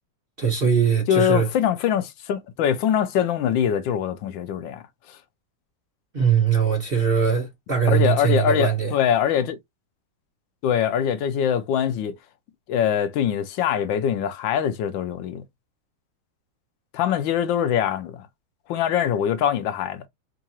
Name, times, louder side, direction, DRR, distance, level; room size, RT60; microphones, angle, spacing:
voice 1, 0.4-1.5 6.1-8.9, right 7 dB, 40° right, 0.8 m, -21 dB
voice 2, 1.1-5.2 7.9-9.6 10.6-12.2 12.7-15.4 16.9-18.3 18.7-20.1, left 9 dB, 80° left, 1.3 m, -23 dB
4.6 x 2.5 x 2.8 m
omnidirectional pair, 2.1 m